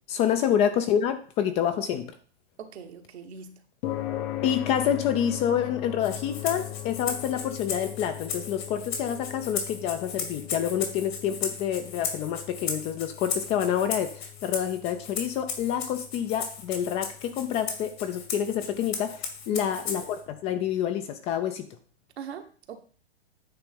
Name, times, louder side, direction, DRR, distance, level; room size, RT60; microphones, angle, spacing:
voice 1, 0.1-2.1 4.4-21.7, left 9 dB, 20° left, 9 dB, 0.4 m, -28 dB
voice 2, 2.6-3.6 19.5-19.7 22.2-22.8, right 7 dB, 70° right, 6 dB, 1.2 m, -41 dB
sound 1, 3.8-20.3, left 14 dB, 40° left, 0.7 m, -40 dB
Rattle (instrument), 6.0-20.2, left 6 dB, 65° left, 2.0 m, -36 dB
9.0 x 3.4 x 5.2 m, 0.43 s
hypercardioid pair, 120°, 33 cm